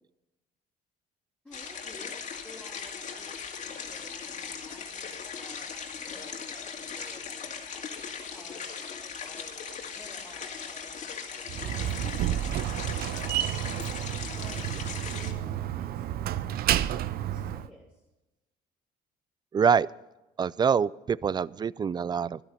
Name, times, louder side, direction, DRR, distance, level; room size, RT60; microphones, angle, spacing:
voice 1, 1.4-7.6 8.3-8.7 9.2-13.7 14.3-18.0, left 1 dB, 5° left, -7 dB, 4.0 m, -53 dB
sound 1, 1.5-15.3, left 6 dB, 45° left, 2.3 m, -39 dB
Slam, 11.5-17.7, right 12 dB, 65° right, 0.7 m, -30 dB
voice 2, 19.5-19.9 20.4-22.4, right 6 dB, 25° right, 22 dB, 0.4 m, -25 dB
13.0 x 12.0 x 5.5 m, 1.0 s
cardioid pair, 110°, 17 cm